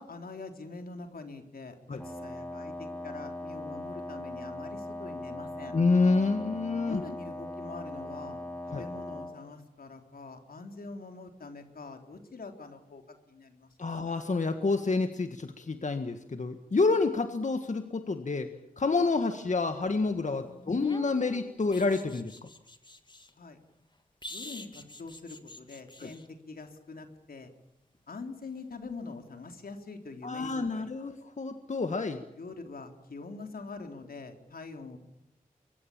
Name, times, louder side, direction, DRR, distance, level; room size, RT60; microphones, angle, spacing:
voice 1, 0.0-5.7 6.9-13.0 13.3-14.1 20.4-20.7 23.4-23.6 24.3-27.5 28.1-31.1 32.3-35.0, left 3 dB, 80° left, 5 dB, 3.7 m, -44 dB
Wind instrument woodwind instrument, 2.0-9.4, left 1 dB, 10° left, 5.4 m, -40 dB
voice 2, 5.7-7.0 8.7-8.8 13.8-18.5 18.8-22.4 26.0-26.1 30.2-32.2, left 3 dB, 55° left, 8 dB, 1.7 m, -28 dB
sound 1, 20.6-23.3 24.2-26.3 28.9-29.1, left 2 dB, 30° left, 2.7 m, -45 dB
24.0 x 24.0 x 8.8 m, 0.84 s
wide cardioid pair, 65°, 15 cm